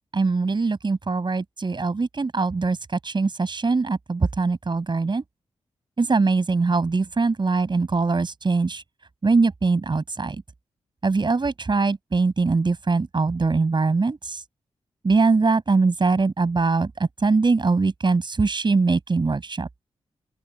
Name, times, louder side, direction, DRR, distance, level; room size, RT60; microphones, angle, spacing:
voice 1, 0.1-2.8 3.0-5.2 6.0-8.8 9.2-10.4 11.0-14.4 15.0-19.7, right 4 dB, 45° right, 5.8 m, -22 dB
open air
cardioid pair, 55°, 11 cm